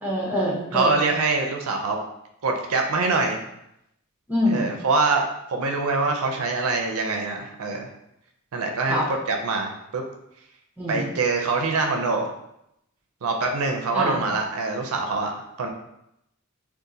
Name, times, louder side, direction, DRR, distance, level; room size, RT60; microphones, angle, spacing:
voice 1, 0.0-1.0 4.3-4.7 8.9-9.1 10.8-11.1 13.9-14.2, equal, 10° right, -4 dB, 0.6 m, -25 dB
voice 2, 0.7-2.0 2.4-3.4 4.5-7.9 8.5-10.0 10.9-12.3 13.2-15.7, right 3 dB, 75° right, 2 dB, 0.4 m, -24 dB
2.6 x 2.4 x 3.7 m, 0.81 s
head